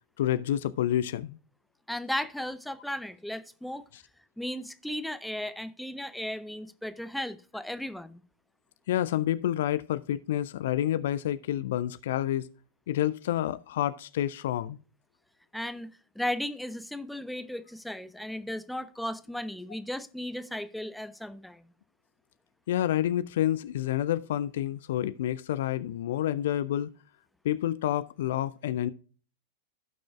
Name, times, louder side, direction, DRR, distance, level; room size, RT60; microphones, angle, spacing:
voice 1, 0.2-1.4 3.9-4.0 8.9-12.5 12.9-14.8 22.7-26.9 27.4-28.9, left 12 dB, 55° left, 0.4 m, -29 dB
voice 2, 1.9-3.9 4.4-8.2 15.5-21.6, left 1 dB, ahead, 0.6 m, -35 dB
16.0 x 6.2 x 2.3 m
figure-of-eight pair, 90°, 0 cm